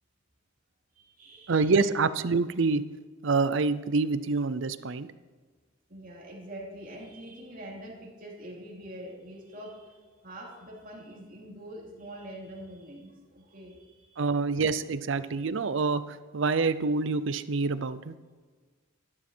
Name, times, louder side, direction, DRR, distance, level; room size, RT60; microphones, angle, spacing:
voice 1, 0.9-1.7 5.9-14.2, right 1 dB, 45° right, -2 dB, 2.8 m, -44 dB
voice 2, 1.5-2.8 3.2-5.1 14.2-18.1, right 4 dB, 65° right, 14 dB, 0.6 m, -26 dB
12.5 x 11.5 x 4.4 m, 1.4 s
head